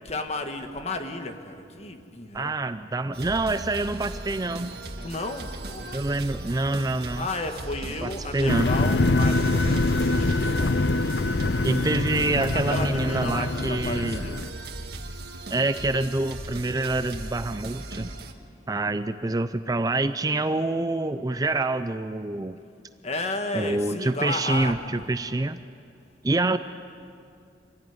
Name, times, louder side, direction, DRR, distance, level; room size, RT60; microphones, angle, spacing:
voice 1, 0.1-2.6 5.0-6.0 7.2-10.8 12.5-14.4 23.0-25.2, left 2 dB, 35° left, 6 dB, 1.7 m, -33 dB
voice 2, 2.3-4.8 5.9-7.3 8.0-8.7 11.6-14.2 15.5-18.1 18.7-22.6 23.5-25.6 26.2-26.6, right 2 dB, 20° right, 11 dB, 0.5 m, -26 dB
sound 1, 3.1-18.3, right 2 dB, 60° right, 1.8 m, -38 dB
sound 2, 8.5-14.5, left 2 dB, 75° left, 0.7 m, -24 dB
26.0 x 16.0 x 9.5 m, 2.5 s
head